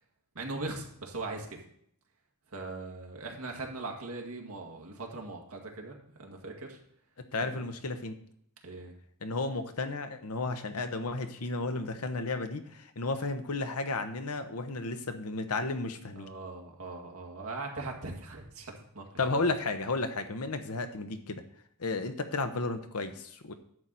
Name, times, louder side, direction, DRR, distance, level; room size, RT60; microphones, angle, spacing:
voice 1, 0.4-1.6 2.5-6.8 7.4-7.7 8.6-8.9 16.2-19.0 19.3-19.4, right 3 dB, 75° right, 1 dB, 1.9 m, -40 dB
voice 2, 7.3-8.2 9.2-16.3 19.2-21.4 21.8-23.5, left 3 dB, 80° left, 8 dB, 1.0 m, -33 dB
11.0 x 4.1 x 7.5 m, 0.68 s
head